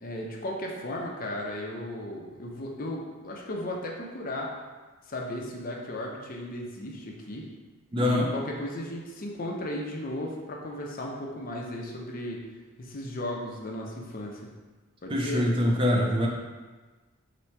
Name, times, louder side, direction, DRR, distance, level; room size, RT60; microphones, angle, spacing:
voice 1, 0.0-4.5 5.1-7.5 8.0-12.4 12.8-14.4 15.0-15.5, left 1 dB, 40° left, -1 dB, 0.5 m, -35 dB
voice 2, 7.9-8.3 15.1-16.3, left 1 dB, 25° right, -1 dB, 0.4 m, -24 dB
3.3 x 2.9 x 4.4 m, 1.3 s
head